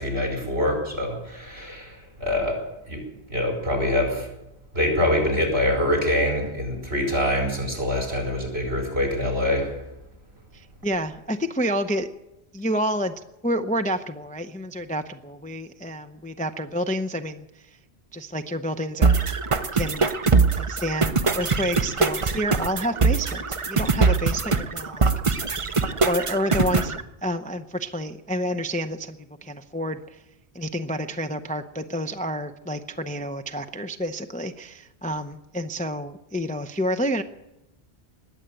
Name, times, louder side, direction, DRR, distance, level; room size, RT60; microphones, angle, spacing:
voice 1, 0.0-2.6 2.9-3.0 3.3-4.3 4.7-9.8, left 1 dB, 70° right, 0 dB, 5.0 m, -25 dB
voice 2, 10.5-12.1 12.5-13.1 13.4-17.5 18.1-19.3 19.7-20.1 20.6-25.1 26.1-30.2 30.5-37.2, equal, 10° left, 7 dB, 0.5 m, -29 dB
sound 1, 19.0-27.0, right 4 dB, 35° right, 0.7 m, -22 dB
20.0 x 8.1 x 8.8 m, 0.92 s
omnidirectional pair, 1.1 m